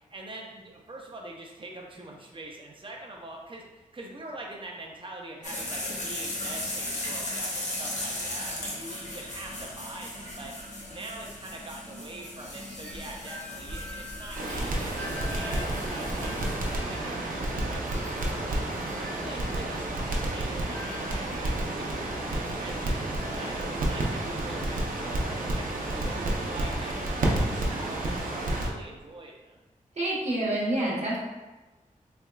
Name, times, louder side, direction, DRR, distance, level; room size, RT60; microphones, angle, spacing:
voice 1, 0.1-10.5 10.9-14.9 15.3-18.6 18.9-23.0 23.3-29.6, right 2 dB, 40° right, 0 dB, 0.6 m, -44 dB
sound 1, 5.4-16.7, left 1 dB, 60° left, 1.0 m, -37 dB
Wind chime, 11.7-25.1, left 2 dB, 10° left, 0.4 m, -47 dB
Crackle, 14.3-28.7, right 1 dB, 80° right, 0.6 m, -30 dB
voice 2, 29.9-31.2, right 1 dB, 55° right, -6 dB, 1.0 m, -27 dB
3.5 x 3.3 x 2.3 m, 1.2 s
wide cardioid pair, 95°, 14 cm